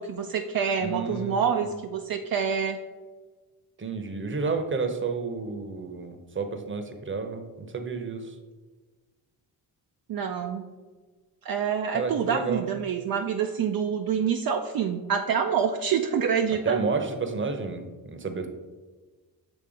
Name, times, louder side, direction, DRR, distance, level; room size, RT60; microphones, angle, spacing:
voice 1, 0.0-2.8 10.1-10.7 11.4-16.8, right 7 dB, 60° right, 4 dB, 0.5 m, -27 dB
voice 2, 0.8-1.7 3.8-7.5 7.7-8.3 11.9-12.6 16.5-18.5, right 4 dB, 30° right, 7 dB, 0.8 m, -31 dB
7.1 x 3.2 x 5.0 m, 1.3 s
cardioid pair, 80°, 41 cm